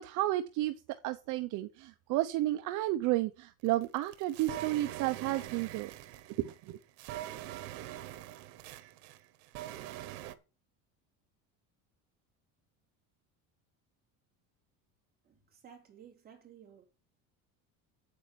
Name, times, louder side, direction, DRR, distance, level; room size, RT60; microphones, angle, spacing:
voice 1, 0.0-5.9 6.4-6.8, right 16 dB, 55° right, 0.8 m, -32 dB
sound 1, 3.7-10.3, right 13 dB, 80° right, 1.3 m, -44 dB
voice 2, 15.2-16.8, right 8 dB, 25° right, 3.2 m, -55 dB
8.6 x 8.6 x 5.2 m
cardioid pair, 175°, 37 cm